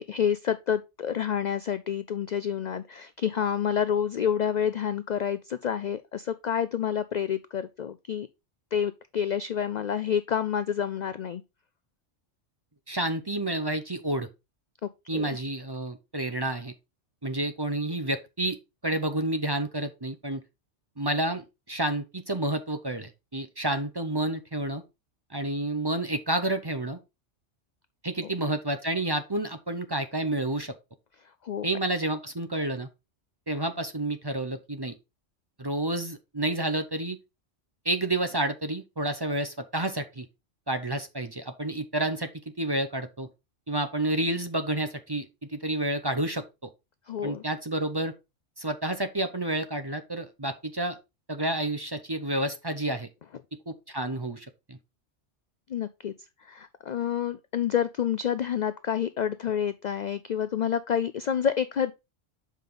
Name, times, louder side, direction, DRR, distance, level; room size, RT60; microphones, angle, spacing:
voice 1, 0.0-8.3 8.7-11.4 14.8-15.3 31.4-31.7 47.1-47.4 55.7-56.1 56.4-61.9, left 8 dB, 70° left, 0.4 m, -28 dB
voice 2, 12.9-14.3 15.1-16.7 17.2-18.6 18.8-20.4 21.0-24.8 25.3-27.0 28.0-30.8 31.6-32.9 33.5-34.9 35.6-37.2 37.8-40.3 40.7-42.3 42.6-43.3 43.7-46.4 47.2-48.1 48.6-51.0 51.3-53.1 53.7-54.8, right 1 dB, 25° right, 0.7 m, -30 dB
7.4 x 5.2 x 3.8 m
omnidirectional pair, 1.3 m